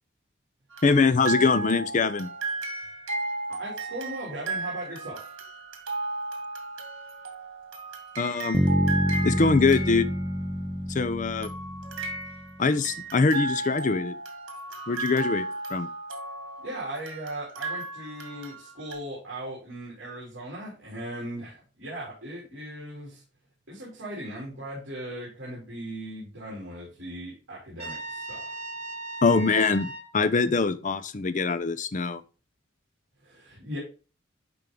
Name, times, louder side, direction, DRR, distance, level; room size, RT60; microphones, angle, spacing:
sound 1, 0.7-10.6 11.4-18.9, right 2 dB, 90° right, 2.1 m, -35 dB
voice 1, 0.8-2.3 8.2-8.6 9.2-10.1 10.9-11.5 12.6-14.2 14.9-15.4 15.7-15.9 29.2-32.2, left 4 dB, 40° left, 0.5 m, -23 dB
voice 2, 3.6-5.3 16.6-23.2 23.7-28.6 33.2-33.8, right 1 dB, 65° right, 3.3 m, -38 dB
Bass guitar, 8.5-12.6, equal, ahead, 0.9 m, -27 dB
Trumpet, 27.8-30.1, right 2 dB, 35° right, 3.0 m, -37 dB
10.5 x 3.7 x 3.7 m
head